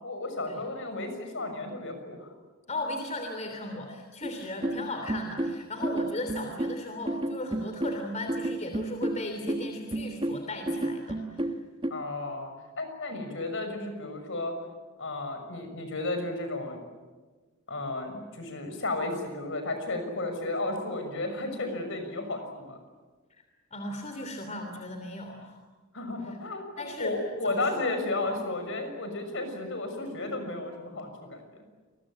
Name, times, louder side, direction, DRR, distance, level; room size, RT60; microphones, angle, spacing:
voice 1, 0.0-2.3 11.9-12.5 12.8-14.5 15.0-16.8 17.7-22.8 25.9-31.4, left 2 dB, 60° left, 7 dB, 6.3 m, -33 dB
voice 2, 2.7-11.5 13.1-13.2 23.7-25.6 26.2-26.4 26.8-27.2 27.4-27.7 28.3-28.4, left 1 dB, 35° left, 5 dB, 3.1 m, -37 dB
sound 1, 4.2-11.9, right 1 dB, 25° right, 1.7 m, -31 dB
28.5 x 21.5 x 8.9 m, 1.3 s
head